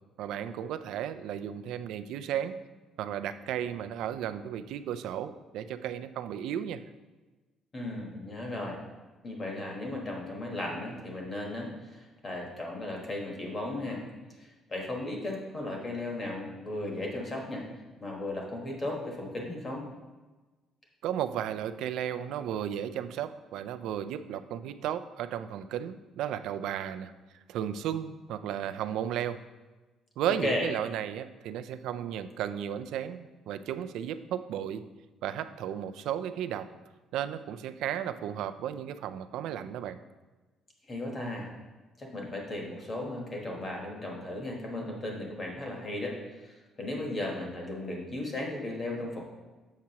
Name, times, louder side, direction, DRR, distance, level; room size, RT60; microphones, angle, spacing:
voice 1, 0.2-2.6 3.0-6.8 21.0-27.1 27.5-29.4 30.2-34.8 35.2-36.7 37.1-40.0, right 10 dB, 70° right, 11 dB, 0.3 m, -34 dB
voice 2, 7.7-8.8 9.2-14.0 14.4-17.6 18.0-19.8 30.3-30.7 40.9-41.5 42.0-49.2, left 1 dB, 25° left, 0 dB, 1.1 m, -36 dB
7.3 x 5.7 x 2.8 m, 1.2 s
cardioid pair, 170°, 0 cm